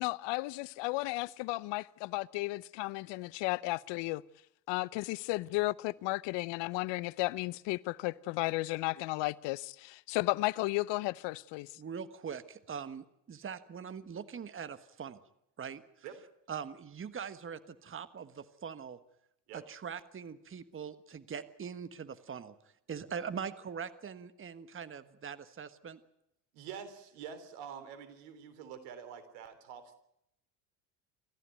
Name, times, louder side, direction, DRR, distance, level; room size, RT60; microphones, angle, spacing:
voice 1, 0.0-4.2 4.7-11.7, left 21 dB, 60° left, 0.8 m, -34 dB
voice 2, 11.8-15.2 15.6-15.8 16.5-19.0 19.5-22.5 22.9-26.0, right 7 dB, 25° right, 1.4 m, -42 dB
voice 3, 26.5-29.9, right 7 dB, 70° right, 3.5 m, -46 dB
27.5 x 14.5 x 9.3 m
hypercardioid pair, 70°, 50 cm